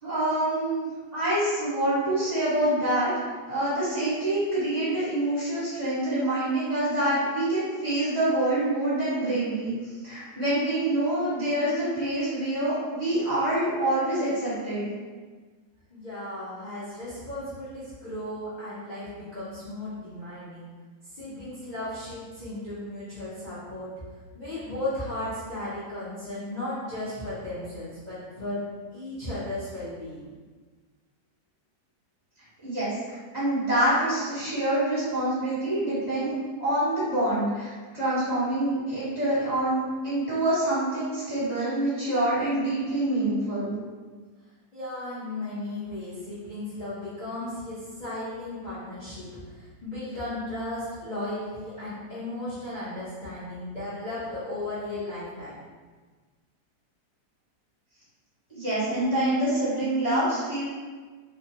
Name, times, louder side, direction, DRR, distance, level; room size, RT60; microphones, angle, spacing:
voice 1, 0.0-3.1 3.4-9.7 10.0-14.9 32.6-43.7 58.5-60.6, right 1 dB, 25° right, -12 dB, 1.2 m, -26 dB
voice 2, 15.9-20.7 21.0-23.9 24.3-28.6 28.9-30.3 44.7-55.5, left 1 dB, 75° left, -12 dB, 0.4 m, -35 dB
3.1 x 2.2 x 2.7 m, 1.4 s
omnidirectional pair, 1.8 m